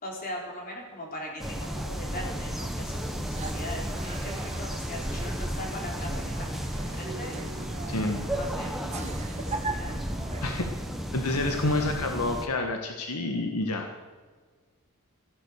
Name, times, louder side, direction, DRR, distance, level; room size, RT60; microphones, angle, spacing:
voice 1, 0.0-7.4 8.2-9.9, left 1 dB, 40° left, 0 dB, 4.3 m, -40 dB
sound 1, 1.4-12.5, equal, ahead, 1.2 m, -33 dB
sound 2, 3.3-10.7, right 3 dB, 30° right, 1.3 m, -40 dB
voice 2, 7.9-8.2 10.4-10.7 11.1-13.9, left 2 dB, 85° left, 4 dB, 1.6 m, -28 dB
14.5 x 11.5 x 6.6 m, 1.4 s
head